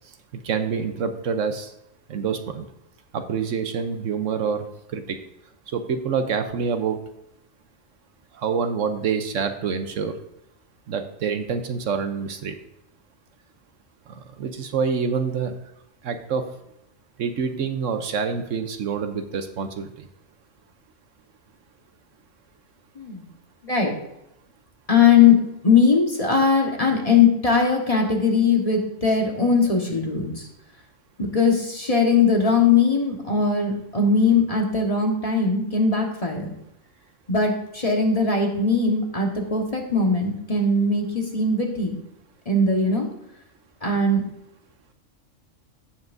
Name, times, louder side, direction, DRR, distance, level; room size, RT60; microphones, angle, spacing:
voice 1, 0.4-1.7 2.1-2.6 3.1-4.7 4.9-5.2 5.7-7.0 8.4-10.2 10.9-12.5 14.1-15.5 16.0-16.4 17.2-20.1, right 6 dB, 75° right, 7 dB, 1.1 m, -26 dB
voice 2, 22.9-23.3 23.6-23.9 24.9-30.5 31.2-36.5 37.3-42.0 42.4-43.1 43.8-44.2, left 4 dB, 30° left, 0 dB, 1.5 m, -20 dB
16.5 x 5.7 x 2.6 m, 0.83 s
omnidirectional pair, 1.4 m